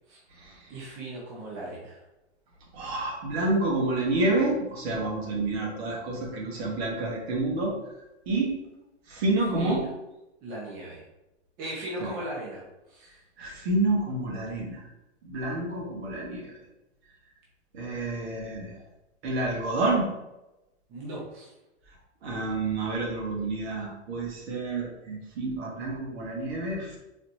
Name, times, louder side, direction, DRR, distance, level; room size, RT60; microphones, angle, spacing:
voice 1, 0.7-2.0 9.5-9.9 10.4-11.0 11.6-12.6 12.9-13.1 20.9-21.5, right 1 dB, 25° right, -5 dB, 0.8 m, -37 dB
voice 2, 2.7-7.7 8.3-8.5 9.1-9.8 12.0-12.1 13.4-14.8 15.2-16.5 17.7-18.8 19.2-20.1 22.2-27.0, right 2 dB, 60° right, -2 dB, 1.4 m, -28 dB
4.1 x 3.0 x 2.7 m, 0.96 s
supercardioid pair, 155°, 35 cm